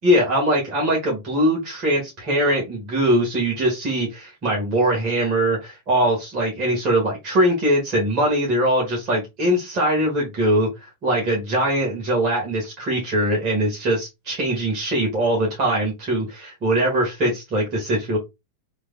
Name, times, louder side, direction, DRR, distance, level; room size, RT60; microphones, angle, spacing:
voice 1, 0.0-10.7 11.0-18.2, right 1 dB, 40° right, -2 dB, 1.6 m, -21 dB
3.3 x 3.2 x 2.2 m, 0.22 s
figure-of-eight pair, 90°, 0 cm